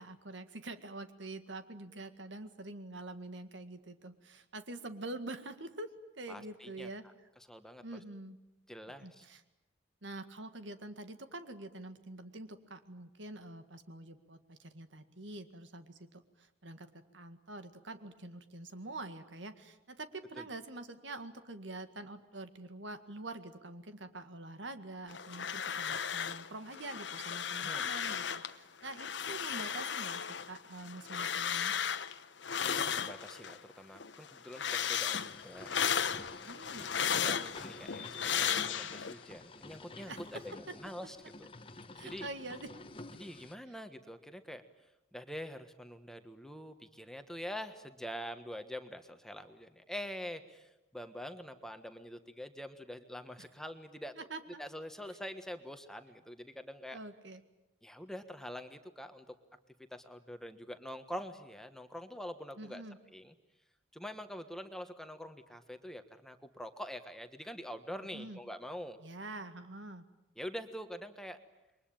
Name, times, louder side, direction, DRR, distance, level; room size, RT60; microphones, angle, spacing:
voice 1, 0.0-5.9 6.2-7.0 7.8-8.4 9.0-9.4 10.0-16.2 16.6-30.2 30.5-31.8 36.5-37.3 40.0-40.4 41.9-42.7 54.2-54.6 56.9-57.4 62.6-63.0 68.1-68.4 69.0-70.0, right 2 dB, 70° right, 9 dB, 1.9 m, -46 dB
voice 2, 6.3-6.9 7.5-7.8 8.7-9.3 20.4-20.5 27.5-27.9 32.6-35.7 36.6-36.8 37.1-41.5 42.0-42.3 43.1-44.6 45.1-54.3 54.6-57.0 57.8-59.4 59.9-63.3 63.9-69.0 70.4-71.4, equal, 5° left, 7 dB, 1.4 m, -45 dB
sound 1, 25.1-26.5 26.7-28.5 28.9-33.6 34.0-39.1, left 8 dB, 65° left, 1.0 m, -35 dB
sound 2, 35.1-35.3 36.3-40.5, left 10 dB, 85° left, 1.9 m, -48 dB
sound 3, 35.3-43.6, left 2 dB, 30° left, 1.2 m, -51 dB
28.5 x 23.0 x 8.9 m, 0.92 s
head